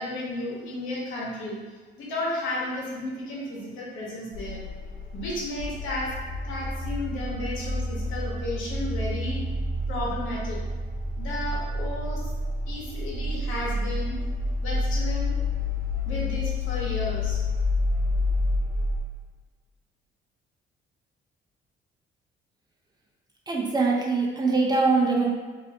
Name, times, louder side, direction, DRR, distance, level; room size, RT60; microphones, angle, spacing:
voice 1, 0.0-1.6 2.0-4.6 5.1-6.1 6.4-9.4 9.9-10.6 11.2-12.2 12.7-14.1 14.6-15.4 16.0-17.4, left 1 dB, 85° left, -5 dB, 1.0 m, -33 dB
sound 1, 4.3-19.0, left 2 dB, 85° right, 0.9 m, -29 dB
voice 2, 23.5-25.3, right 3 dB, 20° right, -2 dB, 0.5 m, -23 dB
2.6 x 2.5 x 3.4 m, 1.4 s
cardioid pair, 90°, 20 cm